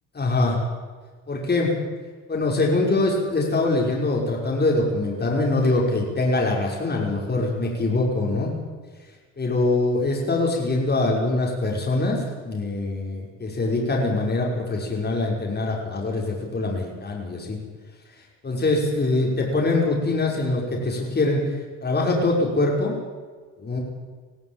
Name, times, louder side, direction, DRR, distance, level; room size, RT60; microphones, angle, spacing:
voice 1, 0.1-0.6 1.3-1.7 2.3-8.5 9.4-17.6 18.4-23.0 23.6-23.8, left 2 dB, 35° left, -2 dB, 5.6 m, -23 dB
20.5 x 14.5 x 9.1 m, 1.5 s
cardioid pair, 90°, 30 cm